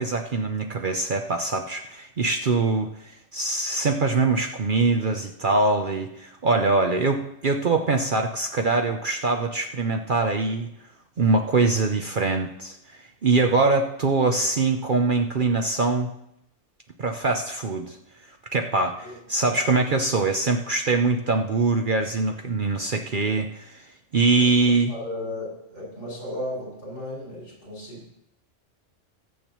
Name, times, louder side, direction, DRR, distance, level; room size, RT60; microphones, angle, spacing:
voice 1, 0.0-10.7 11.2-12.8 13.2-16.1 17.0-18.0 18.5-23.7 24.1-24.9, right 3 dB, 50° right, 5 dB, 0.8 m, -23 dB
voice 2, 11.5-11.9 19.0-19.2 19.4-19.8 24.4-28.2, left 1 dB, 65° left, -5 dB, 6.4 m, -36 dB
21.0 x 8.5 x 3.0 m, 0.80 s
omnidirectional pair, 1.3 m